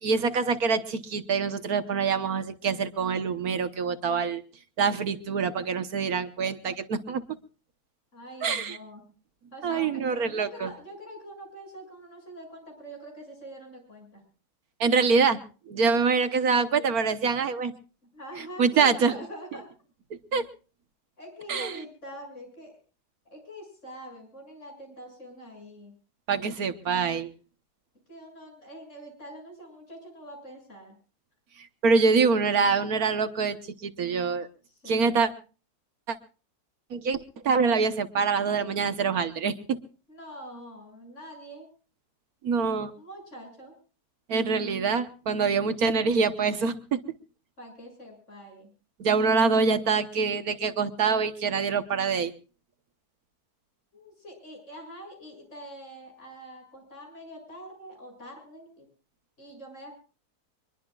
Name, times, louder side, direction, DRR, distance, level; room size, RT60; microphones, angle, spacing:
voice 1, 0.0-4.4 4.8-7.2 8.4-8.8 9.6-10.7 14.8-15.4 15.7-17.7 18.6-19.1 20.3-20.5 21.5-21.8 26.3-27.3 31.8-33.6 33.8-34.5 34.9-35.3 36.1-36.2 36.9-39.8 42.4-42.9 44.3-47.0 49.0-52.3, right 5 dB, 65° right, 10 dB, 1.5 m, -25 dB
voice 2, 8.1-9.0 9.5-14.2 16.7-17.0 18.1-19.7 21.2-22.7 23.3-25.9 28.1-31.0 34.7-35.3 40.1-41.7 42.8-43.8 47.6-48.7 53.9-58.9 59.4-59.9, equal, 45° left, 2 dB, 7.6 m, -44 dB
24.0 x 21.5 x 2.4 m, 0.37 s
omnidirectional pair, 1.7 m